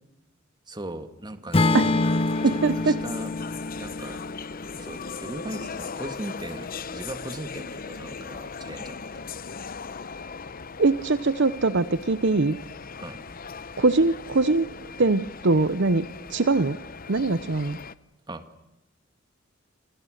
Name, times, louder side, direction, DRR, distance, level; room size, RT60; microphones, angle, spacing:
voice 1, 0.7-1.9 2.4-3.3 3.8-4.2 4.8-9.0 13.0-13.2 18.3-18.5, right 1 dB, 20° right, 9 dB, 2.2 m, -38 dB
Acoustic guitar / Strum, 1.5-5.7, left 2 dB, 30° left, 1.2 m, -27 dB
sound 1, 1.8-17.9, left 5 dB, 45° left, 0.9 m, -39 dB
voice 2, 2.4-3.0 10.8-12.6 13.8-14.7 15.0-16.8 17.1-17.8, right 3 dB, 60° right, 14 dB, 0.9 m, -22 dB
28.0 x 26.0 x 6.6 m, 0.93 s
head